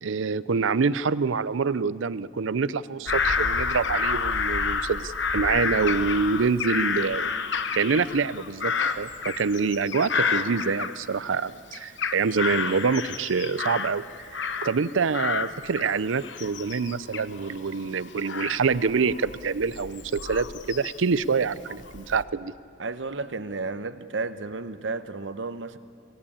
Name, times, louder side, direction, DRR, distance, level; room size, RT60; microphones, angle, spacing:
voice 1, 0.0-7.3 7.7-14.1 14.3-22.5, right 5 dB, 85° right, 17 dB, 0.6 m, -26 dB
Bird vocalization bird call bird song / Crow, 3.1-11.4 11.7-14.9 15.1-21.1 21.7-22.2, left 5 dB, 65° left, 1.0 m, -29 dB
voice 2, 22.8-25.8, right 3 dB, 65° right, 11 dB, 1.0 m, -32 dB
25.5 x 17.5 x 8.7 m, 2.5 s
head